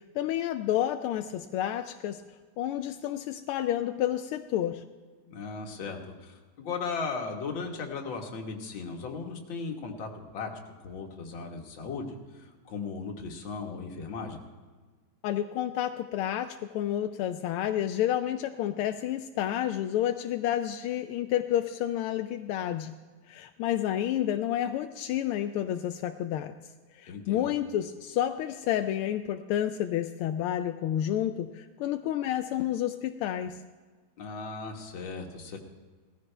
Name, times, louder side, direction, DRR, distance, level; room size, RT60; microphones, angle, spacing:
voice 1, 0.0-2.2 2.6-4.8 15.2-22.9 23.3-26.5 26.9-33.6, left 11 dB, 90° left, 7 dB, 1.5 m, -30 dB
voice 2, 5.3-10.5 10.8-14.4 27.1-27.5 34.2-35.6, left 4 dB, 65° left, 2 dB, 2.2 m, -37 dB
18.0 x 14.5 x 3.3 m, 1.4 s
omnidirectional pair, 2.3 m